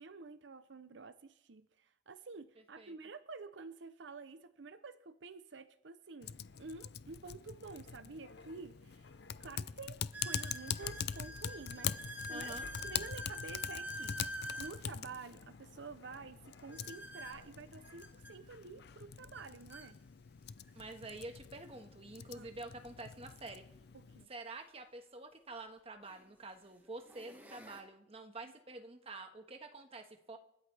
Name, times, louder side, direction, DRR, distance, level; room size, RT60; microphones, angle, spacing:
voice 1, 0.0-9.1 9.4-12.6 12.8-14.2 14.6-20.0 22.3-22.5 23.9-24.3 28.4-28.5, right 4 dB, 85° right, 12 dB, 0.7 m, -50 dB
sound 1, 6.1-18.4 18.8-19.0, left 3 dB, 85° left, 0.8 m, -59 dB
Typing, 6.2-24.2, left 8 dB, 60° left, 0.5 m, -44 dB
sound 2, 8.4-8.5 9.2-9.3 10.1-14.8 16.7-18.3 19.3-19.4 19.7-19.9 20.7-20.8 23.0-23.1 25.2-25.3 26.0-26.3 26.9-27.8, equal, 10° right, 1.7 m, -46 dB
voice 2, 12.3-12.6 20.7-23.6 24.3-30.4, right 2 dB, 35° right, 5 dB, 1.5 m, -48 dB
28.5 x 13.0 x 3.4 m, 0.77 s
head